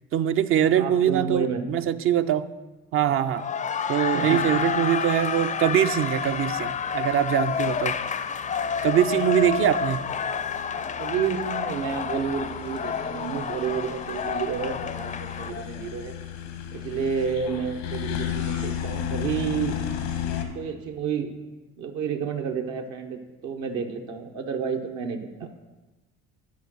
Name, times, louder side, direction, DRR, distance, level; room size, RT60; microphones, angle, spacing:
voice 1, 0.1-2.5 2.9-3.5 3.9-8.0 8.8-10.0, right 10 dB, 45° right, 11 dB, 0.4 m, -23 dB
voice 2, 0.8-1.7 4.1-4.4 7.6-7.7 10.8-16.1 16.7-19.8 20.5-21.3 21.8-23.2 23.4-25.7, right 6 dB, 70° right, 4 dB, 1.0 m, -30 dB
sound 1, 3.2-15.5, left 6 dB, 25° left, 0.4 m, -29 dB
sound 2, 4.3-20.4, left 9 dB, 85° left, 1.0 m, -36 dB
9.5 x 3.9 x 6.2 m, 1.2 s
supercardioid pair, 75°, 30 cm